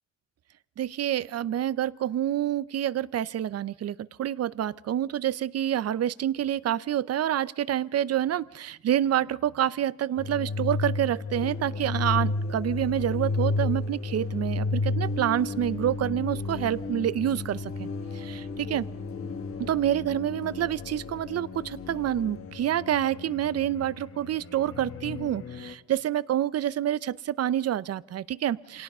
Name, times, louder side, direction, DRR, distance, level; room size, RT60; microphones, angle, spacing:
voice 1, 0.8-17.9 18.1-18.9 19.6-28.8, right 11 dB, 55° right, 20 dB, 0.7 m, -28 dB
sound 1, 10.2-25.7, left 3 dB, 45° left, 1.5 m, -33 dB
sound 2, 11.3-22.6, left 6 dB, 65° left, 2.3 m, -45 dB
26.5 x 18.0 x 5.5 m, 0.86 s
cardioid pair, 90°, 30 cm